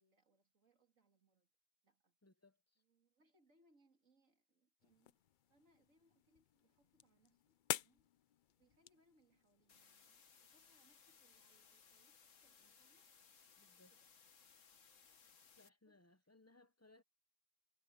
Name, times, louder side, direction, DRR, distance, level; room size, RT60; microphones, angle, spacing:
voice 1, 0.0-1.5 1.8-2.2 2.8-5.2 5.5-8.1 8.6-13.1 13.9-14.1 15.8-16.0, right 1 dB, 65° right, 3.3 m, -77 dB
voice 2, 2.2-2.8 13.6-13.9 15.6-17.0, left 2 dB, 15° left, 0.5 m, -68 dB
sound 1, 4.8-9.9, left 10 dB, 80° left, 0.4 m, -49 dB
sound 2, 9.7-15.7, left 6 dB, 65° left, 1.7 m, -66 dB
omnidirectional pair, 1.4 m